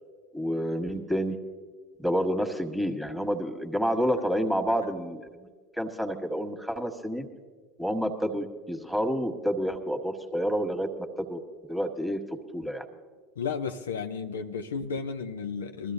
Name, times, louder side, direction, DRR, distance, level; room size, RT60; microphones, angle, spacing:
voice 1, 0.3-1.4 2.0-5.5 5.8-7.2 7.8-10.9 11.2-11.4 11.7-12.2 12.5-12.8 14.8-14.9, equal, ahead, 4 dB, 1.6 m, -29 dB
voice 2, 13.4-15.9, left 5 dB, 80° left, 8 dB, 0.5 m, -33 dB
22.0 x 13.5 x 2.6 m, 1.5 s
hypercardioid pair, 75°, 0 cm